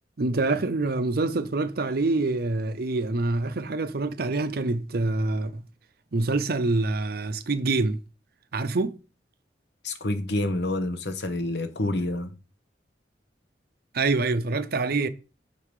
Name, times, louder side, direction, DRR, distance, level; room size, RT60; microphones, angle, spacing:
voice 1, 0.2-5.6 6.1-8.0 8.5-8.9 13.9-15.1, right 3 dB, 60° right, 0.7 m, -26 dB
voice 2, 9.8-12.3, left 2 dB, 70° left, 1.0 m, -28 dB
6.6 x 5.5 x 4.9 m
head